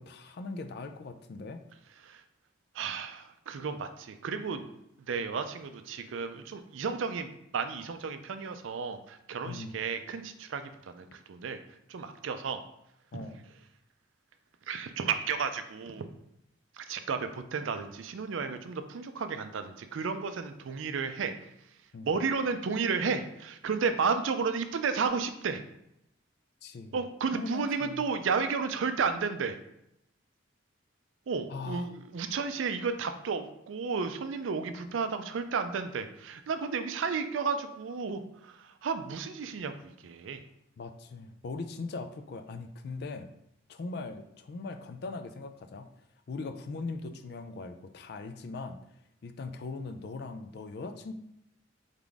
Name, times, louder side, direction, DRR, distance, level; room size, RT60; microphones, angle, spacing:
voice 1, 0.0-1.6 9.5-9.7 13.1-13.4 21.9-22.2 26.6-26.9 27.3-28.0 31.5-31.9 40.8-43.3 43.7-45.9 46.3-48.8 49.2-51.1, left 3 dB, 50° left, 8 dB, 0.3 m, -40 dB
voice 2, 2.7-4.7 5.1-11.6 11.9-12.6 13.1-13.3 14.7-16.1 16.7-21.5 22.0-25.6 26.9-29.6 31.3-40.4, right 5 dB, 75° right, 9 dB, 0.4 m, -33 dB
3.8 x 3.6 x 3.5 m, 0.80 s
head